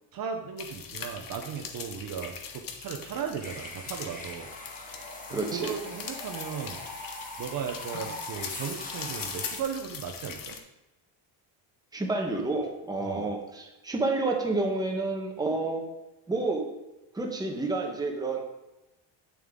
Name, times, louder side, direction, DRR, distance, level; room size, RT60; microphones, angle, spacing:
voice 1, 0.1-4.5 5.3-6.8 7.4-10.6 13.0-13.3, right 7 dB, 45° right, 4 dB, 0.8 m, -36 dB
sound 1, 0.6-10.6, left 7 dB, 45° left, 1.0 m, -41 dB
sound 2, 3.4-9.6, left 2 dB, 15° left, 1.2 m, -41 dB
voice 2, 5.3-5.7 11.9-15.8 16.3-16.7 17.1-18.4, right 3 dB, 10° right, 1 dB, 1.0 m, -29 dB
8.6 x 7.1 x 3.6 m, 1.0 s
cardioid pair, 160°, 47 cm